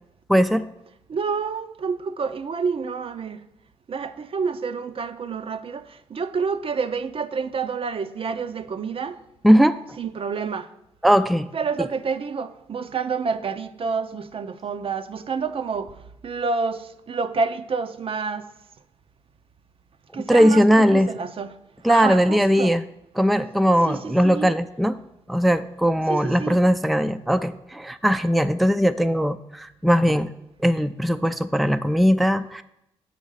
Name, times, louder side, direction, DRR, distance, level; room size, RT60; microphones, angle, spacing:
voice 1, 0.3-0.7 9.4-9.8 11.0-11.5 20.3-21.1 21.8-22.8 23.2-25.0 25.3-30.3 30.6-32.6, equal, ahead, 0.4 m, -19 dB
voice 2, 1.1-3.4 3.9-9.2 10.0-10.7 11.5-16.0 16.2-18.5 20.1-21.6 21.9-22.8 23.8-24.5 26.1-26.6, right 5 dB, 55° right, 0.5 m, -28 dB
6.2 x 5.1 x 5.4 m
supercardioid pair, 55°, 11 cm